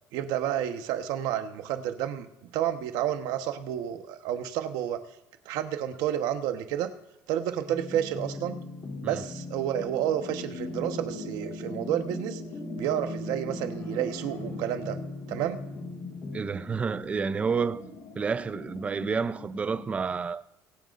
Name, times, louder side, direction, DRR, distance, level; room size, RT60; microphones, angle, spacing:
voice 1, 0.1-2.3 2.5-5.0 5.4-6.9 7.3-8.6 9.0-12.4 12.8-15.0 15.3-15.6, right 11 dB, 80° right, 1.1 m, -30 dB
sound 1, 7.6-16.4, left 2 dB, 35° left, 2.8 m, -39 dB
sound 2, 9.8-19.9, left 2 dB, 55° left, 2.6 m, -43 dB
voice 2, 16.3-17.8 18.2-20.4, right 5 dB, 20° right, 0.4 m, -29 dB
23.0 x 9.2 x 2.5 m
cardioid pair, 160°, 7 cm